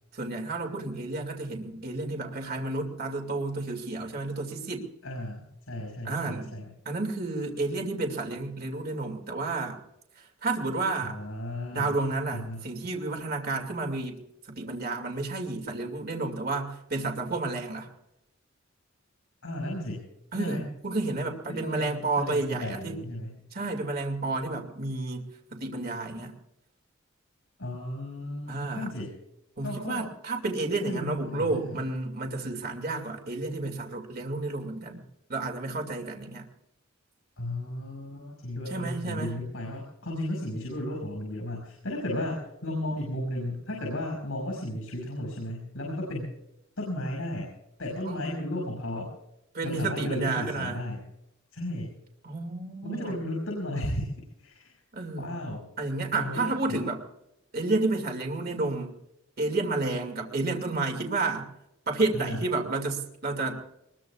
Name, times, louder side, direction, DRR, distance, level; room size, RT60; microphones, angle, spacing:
voice 1, 0.1-4.9 6.0-6.5 6.9-9.8 10.2-11.1 11.7-14.2 14.5-17.9 20.3-23.0 23.5-25.2 25.5-26.3 28.5-28.9 29.6-35.0 35.3-36.5 38.7-39.3 48.0-48.2 49.5-50.8 52.2-53.1 54.9-55.4 55.8-57.0 57.5-58.9 59.4-61.5 61.9-63.6, right 3 dB, 50° right, 2 dB, 2.3 m, -31 dB
voice 2, 5.0-6.7 11.0-12.0 12.3-12.6 19.4-20.6 21.5-23.4 27.6-29.1 29.6-30.1 30.8-31.8 37.4-46.3 46.8-47.5 47.8-49.1 49.6-51.0 51.5-51.9 52.8-54.1 54.4-54.8 55.2-55.7 56.1-56.8 62.1-62.4, left 1 dB, 85° left, -1 dB, 5.6 m, -34 dB
24.0 x 21.5 x 2.4 m, 0.85 s
head